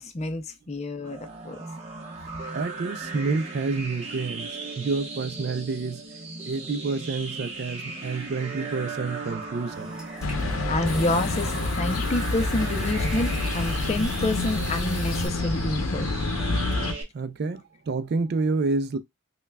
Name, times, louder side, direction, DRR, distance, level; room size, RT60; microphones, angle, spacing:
voice 1, 0.0-1.6 10.7-16.1, left 2 dB, 30° left, 0.5 m, -28 dB
sound 1, 1.0-17.0, right 3 dB, 30° right, 0.9 m, -37 dB
voice 2, 2.5-4.5 4.8-6.0 6.5-9.9 17.1-19.0, right 4 dB, 50° right, 0.3 m, -28 dB
Water tap faucet / Sink (filling or washing) / Trickle dribble, 9.7-15.3, equal, 5° right, 1.2 m, -41 dB
sound 2, 10.2-16.9, left 2 dB, 85° left, 0.6 m, -28 dB
5.4 x 2.2 x 2.2 m
head